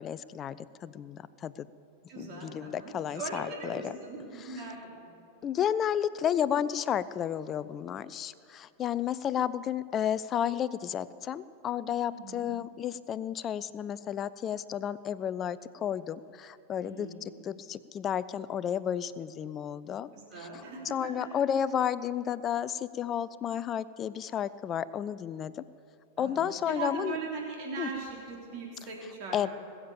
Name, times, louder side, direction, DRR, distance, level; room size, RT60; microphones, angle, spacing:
voice 1, 0.0-1.7 2.2-3.9 4.5-4.6 5.4-17.1 17.4-20.1 20.4-25.6 26.2-27.2 27.8-27.9 29.3-29.5, left 9 dB, 30° left, 17 dB, 0.4 m, -32 dB
voice 2, 2.1-4.8 12.1-12.5 16.8-17.2 20.1-20.8 26.2-29.5, right 4 dB, 40° right, -2 dB, 3.8 m, -39 dB
21.0 x 7.3 x 7.1 m, 2.6 s
figure-of-eight pair, 90°, 0 cm